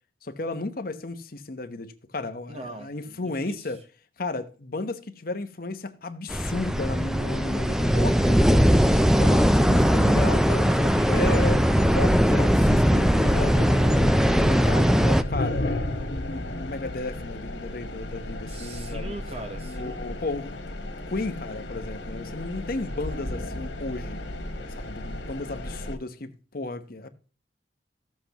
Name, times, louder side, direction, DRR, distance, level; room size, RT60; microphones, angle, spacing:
voice 1, 0.2-3.8 4.2-8.9 9.2-10.7 11.1-19.2 19.6-20.7 21.1-24.2 24.7-27.1, left 2 dB, 55° left, 1.0 m, -34 dB
voice 2, 2.5-3.6 10.4-11.8 18.5-20.0, right 1 dB, 35° right, 1.1 m, -39 dB
sound 1, 6.3-15.2, equal, 5° right, 0.4 m, -20 dB
sound 2, 13.2-26.0, left 1 dB, 80° left, 1.8 m, -34 dB
14.5 x 7.6 x 3.0 m
head